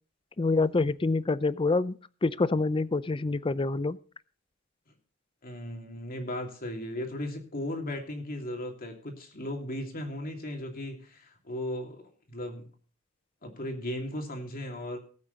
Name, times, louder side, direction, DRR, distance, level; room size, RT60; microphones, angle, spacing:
voice 1, 0.4-2.0 2.2-4.0, left 3 dB, 25° left, 17 dB, 0.5 m, -26 dB
voice 2, 5.4-12.7 13.4-15.0, left 1 dB, 45° left, 3 dB, 2.8 m, -36 dB
19.0 x 8.4 x 4.0 m, 0.41 s
head